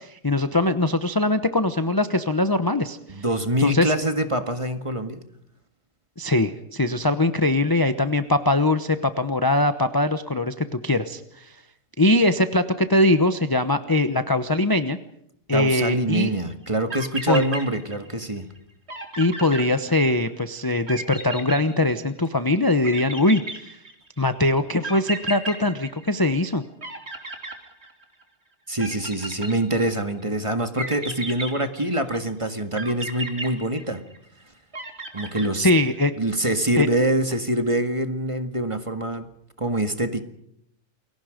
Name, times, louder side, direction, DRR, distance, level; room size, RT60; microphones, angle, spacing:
voice 1, 0.0-3.2 3.6-3.9 6.2-11.5 12.0-15.0 15.5-16.3 17.3-17.4 19.2-23.8 24.2-26.6 35.5-36.1 36.8-36.9, left 2 dB, 20° left, 9 dB, 0.9 m, -22 dB
voice 2, 3.1-5.2 15.5-18.5 28.7-34.0 35.1-35.7 36.2-39.3 39.6-40.2, right 1 dB, 20° right, 8 dB, 1.9 m, -25 dB
sound 1, 16.6-16.7 16.9-18.3 18.6-18.7 18.9-20.3 20.9-22.3 22.8-24.2 24.8-26.5 26.8-28.2 28.8-30.0 30.8-32.2 32.8-34.3 34.7-36.0, right 2 dB, 50° right, 3.7 m, -34 dB
29.0 x 22.5 x 5.2 m, 0.74 s
omnidirectional pair, 1.4 m